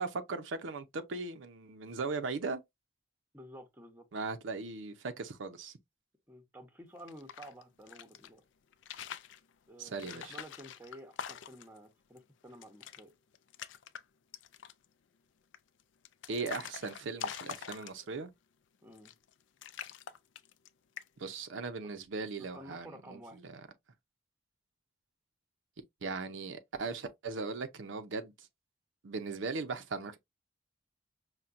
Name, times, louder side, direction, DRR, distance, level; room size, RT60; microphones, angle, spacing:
voice 1, 0.0-2.6 4.1-5.7 9.8-10.3 16.3-18.3 21.2-23.6 26.0-28.5 29.0-30.2, right 4 dB, 80° right, 0.6 m, -38 dB
voice 2, 3.3-4.0 6.3-8.4 9.7-13.1 18.8-19.1 22.4-23.4, equal, 10° right, 0.8 m, -51 dB
sound 1, 7.0-8.3 8.7-9.4 10.0-11.8 12.2-12.3 12.5-13.0 13.3-14.0 14.3-14.9 15.5-18.2 18.9-19.3 19.6-20.7 21.0-21.3, left 8 dB, 70° left, 0.4 m, -44 dB
5.7 x 2.2 x 2.5 m
head